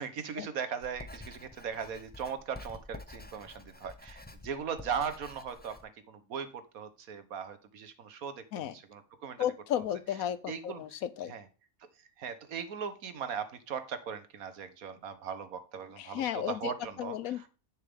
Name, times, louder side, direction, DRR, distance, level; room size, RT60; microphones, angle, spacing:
voice 1, 0.0-9.4 10.5-10.8 11.3-11.4 12.2-17.5, right 7 dB, 80° right, 10 dB, 1.5 m, -39 dB
Writing, 0.8-5.8, left 2 dB, 15° left, 0.4 m, -49 dB
voice 2, 9.4-11.3 16.0-16.7 17.0-17.5, left 10 dB, 80° left, 15 dB, 1.1 m, -34 dB
10.0 x 6.5 x 3.6 m, 0.35 s
omnidirectional pair, 1.5 m